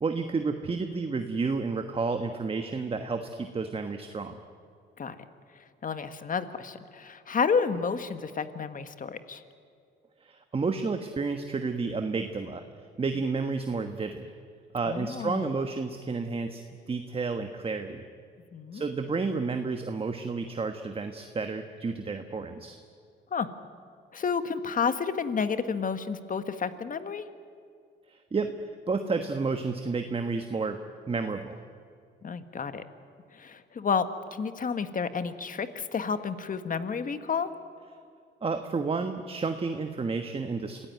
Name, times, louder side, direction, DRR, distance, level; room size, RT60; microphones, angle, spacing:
voice 1, 0.0-4.4 10.2-12.6 13.0-14.3 14.7-16.6 16.9-18.0 18.7-22.8 28.1-28.5 28.9-30.8 31.1-31.6 38.4-40.9, right 4 dB, 30° right, 6 dB, 1.4 m, -31 dB
voice 2, 5.8-9.4 14.9-15.5 18.5-18.8 23.3-23.5 24.1-27.2 32.2-32.8 33.3-37.5, left 6 dB, 40° left, 10 dB, 1.5 m, -30 dB
26.0 x 16.0 x 9.3 m, 2.3 s
cardioid pair, 90°, 20 cm